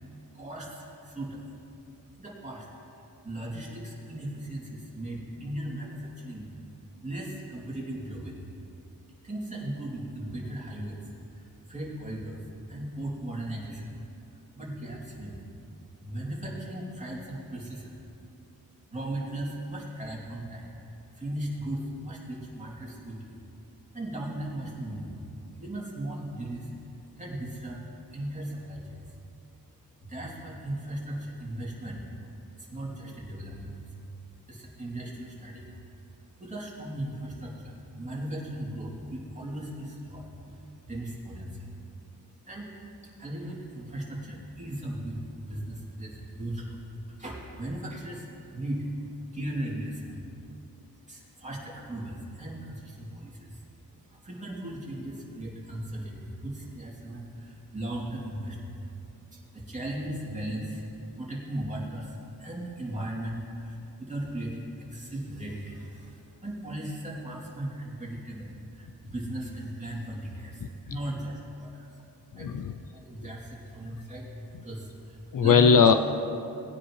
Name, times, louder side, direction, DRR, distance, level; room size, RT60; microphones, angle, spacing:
voice 1, 0.0-1.4 2.2-2.7 3.2-6.5 7.0-8.5 9.1-12.4 12.7-13.9 14.5-15.4 16.0-18.0 18.9-23.4 23.9-25.2 25.6-27.8 28.1-29.1 30.0-33.9 34.5-35.7 36.4-41.7 42.4-42.7 43.0-48.9 49.3-50.2 51.1-53.6 53.9-60.9 61.1-71.9 72.3-72.6 72.9-75.8, right 1 dB, 20° right, -5 dB, 2.8 m, -37 dB
voice 2, 72.3-72.8 75.3-75.9, left 6 dB, 60° left, 9 dB, 0.5 m, -19 dB
19.5 x 9.8 x 3.2 m, 2.8 s
wide cardioid pair, 80°, 38 cm